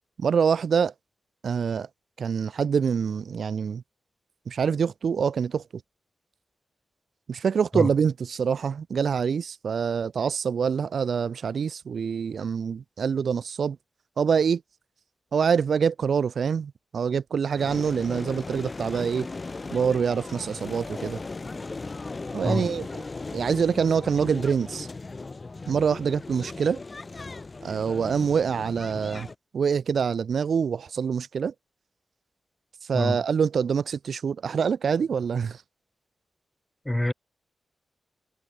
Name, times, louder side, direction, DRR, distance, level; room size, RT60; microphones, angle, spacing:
voice 1, 0.2-0.9 1.4-1.9 2.2-3.8 4.5-5.6 7.3-13.8 14.2-14.6 15.3-19.3 19.7-21.2 22.3-22.9 23.3-24.9 25.7-26.8 27.6-31.5 32.9-35.6, right 6 dB, 65° right, 0.6 m, -25 dB
voice 2, 7.7-7.9 22.4-22.7 32.9-33.2 36.9-37.1, left 1 dB, 10° left, 0.5 m, -25 dB
sound 1, 17.6-29.3, left 3 dB, 30° left, 2.2 m, -37 dB
wide cardioid pair, 105°, 0 cm